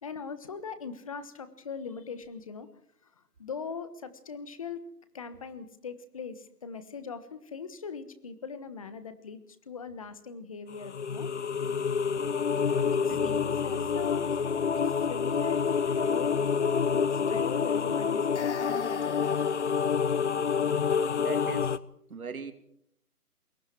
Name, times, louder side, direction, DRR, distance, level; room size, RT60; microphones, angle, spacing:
voice 1, 0.0-2.7 3.4-4.8 5.1-9.4 9.7-11.3 12.9-14.3 14.8-16.3 16.8-19.3, left 5 dB, 20° left, 12 dB, 1.2 m, -40 dB
sound 1, 10.7-21.8, left 6 dB, 45° left, 1.0 m, -28 dB
voice 2, 12.7-13.4 21.2-21.8 22.1-22.5, right 6 dB, 65° right, 8 dB, 3.0 m, -40 dB
sound 2, 13.1-17.1, right 5 dB, 15° right, 3.2 m, -48 dB
28.5 x 21.5 x 4.6 m, 0.69 s
hypercardioid pair, 165°, 46 cm